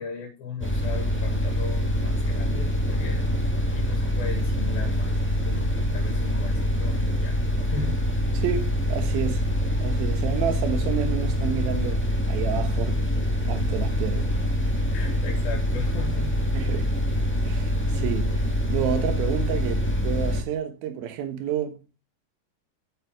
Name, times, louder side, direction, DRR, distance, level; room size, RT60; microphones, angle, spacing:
voice 1, 0.0-3.3 3.7-7.4 7.7-8.0 14.9-16.9, left 5 dB, 85° left, 3.7 m, -38 dB
sound 1, 0.6-20.4, equal, 10° left, 0.6 m, -25 dB
voice 2, 8.3-9.5 9.8-13.0 13.5-14.3 16.5-17.0 17.4-21.8, right 9 dB, 85° right, 3.1 m, -30 dB
8.0 x 7.4 x 4.7 m
omnidirectional pair, 4.2 m